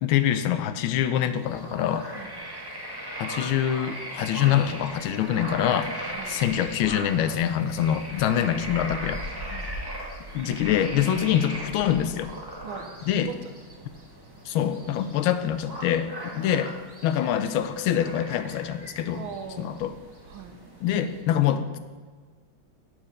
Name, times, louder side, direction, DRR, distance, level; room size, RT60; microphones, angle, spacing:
voice 1, 0.0-2.1 3.2-9.2 10.3-12.3 13.1-13.3 14.5-16.7 17.0-19.2 19.6-19.9 20.8-21.8, left 10 dB, 90° left, 11 dB, 1.4 m, -25 dB
sound 1, 1.3-21.2, right 1 dB, 15° right, 1.4 m, -38 dB
voice 2, 6.1-6.4 9.5-9.7 12.6-12.9 13.2-13.5 19.1-19.7 20.2-20.6, right 6 dB, 90° right, 7 dB, 1.7 m, -40 dB
8.8 x 7.9 x 5.0 m, 1.5 s
omnidirectional pair, 2.2 m